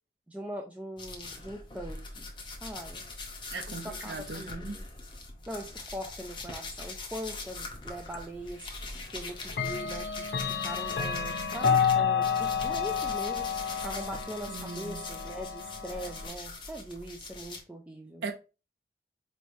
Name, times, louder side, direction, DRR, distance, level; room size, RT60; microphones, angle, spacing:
voice 1, 0.3-2.3 2.6-3.0 3.7-4.8 5.5-8.7 9.1-13.5 13.8-18.2, equal, 10° right, 0.3 m, -41 dB
sound 1, 1.0-11.9 12.2-17.6, left 3 dB, 25° left, 0.7 m, -42 dB
voice 2, 3.5-4.8 14.5-15.0 18.2-18.3, right 4 dB, 65° right, 0.6 m, -38 dB
Clock, 8.1-8.2 9.5-16.3, left 7 dB, 70° left, 0.5 m, -30 dB
4.4 x 3.1 x 2.6 m
head